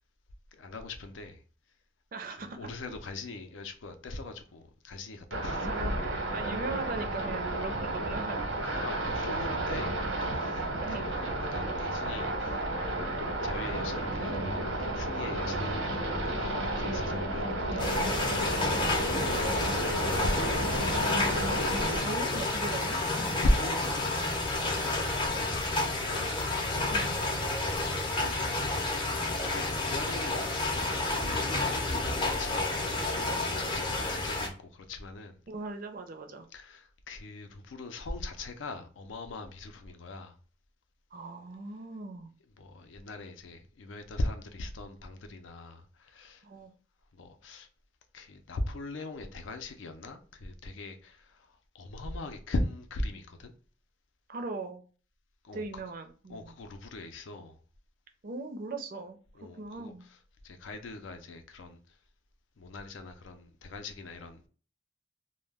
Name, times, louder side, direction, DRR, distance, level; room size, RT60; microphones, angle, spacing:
voice 1, 0.5-1.4 2.4-6.0 8.6-18.0 18.9-21.0 23.2-26.3 27.3-28.8 29.3-31.1 31.7-35.4 36.5-40.4 42.6-46.4 47.1-47.7 48.1-53.5 55.4-55.6 56.3-57.6 59.3-59.9 60.4-61.8 62.6-64.5, left 1 dB, 80° left, 0.5 m, -39 dB
voice 2, 2.1-2.6 5.6-8.4 10.8-11.0 18.7-18.9 22.0-23.4 26.9-27.2 35.5-36.5 41.1-42.3 46.4-46.7 54.3-54.8 55.5-56.5 58.2-59.2 59.6-60.0, right 3 dB, 45° right, 0.4 m, -39 dB
sound 1, 5.3-22.0, right 1 dB, 90° right, 0.9 m, -32 dB
sound 2, 17.8-34.5, left 2 dB, 25° left, 0.5 m, -30 dB
2.2 x 2.1 x 3.3 m
head